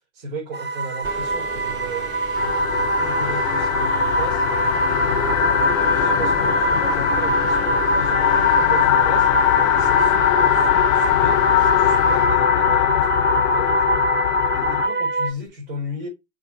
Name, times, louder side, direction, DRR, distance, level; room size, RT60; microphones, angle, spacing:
voice 1, 0.1-4.4 4.8-9.3 9.8-14.1 14.5-16.1, equal, 65° right, 4.1 m, -35 dB
sound 1, 0.5-15.3, right 3 dB, 25° right, 1.6 m, -24 dB
sound 2, 1.0-12.4, right 3 dB, 85° right, 4.2 m, -35 dB
sound 3, 2.4-14.9, left 16 dB, 75° left, 0.6 m, -20 dB
6.8 x 5.1 x 4.4 m
hypercardioid pair, 85°, 40 cm